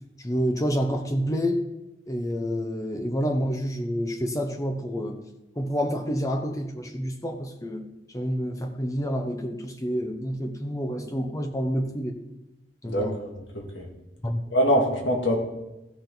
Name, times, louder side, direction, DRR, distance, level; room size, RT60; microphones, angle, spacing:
voice 1, 0.2-1.7 2.1-5.2 5.6-7.9 8.1-12.2 12.8-13.2 14.2-14.4, equal, 20° left, 5 dB, 0.8 m, -28 dB
voice 2, 12.9-13.3 13.5-13.9 14.5-15.4, equal, 85° left, 0 dB, 2.1 m, -24 dB
15.0 x 6.8 x 4.0 m, 0.93 s
head